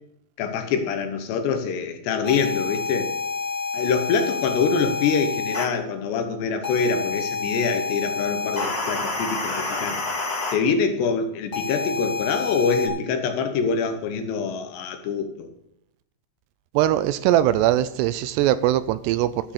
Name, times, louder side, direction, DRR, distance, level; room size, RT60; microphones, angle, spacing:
voice 1, 0.4-3.1 3.7-10.0 10.5-15.5, left 5 dB, 80° left, 7 dB, 3.2 m, -25 dB
sound 1, 2.2-5.6 6.6-10.5 11.5-12.9, left 4 dB, 45° left, 1.2 m, -28 dB
voice 2, 16.7-19.5, right 13 dB, 85° right, 14 dB, 2.6 m, -21 dB
14.0 x 6.0 x 6.6 m, 0.80 s
omnidirectional pair, 5.0 m